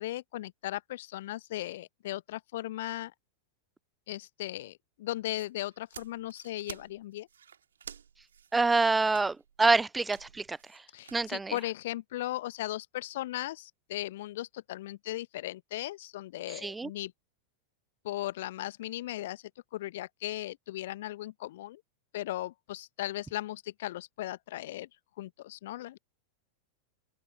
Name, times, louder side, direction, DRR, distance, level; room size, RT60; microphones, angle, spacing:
voice 1, 0.0-3.1 4.1-7.3 10.9-17.1 18.0-19.4 19.7-21.8 22.1-24.9 25.2-26.0, left 15 dB, 55° left, 1.1 m, -37 dB
sound 1, 5.1-11.7, right 8 dB, 65° right, 3.1 m, -51 dB
voice 2, 8.5-10.6 11.1-11.5 16.6-16.9, right 3 dB, 10° right, 0.4 m, -26 dB
open air
figure-of-eight pair, 90°, 0 cm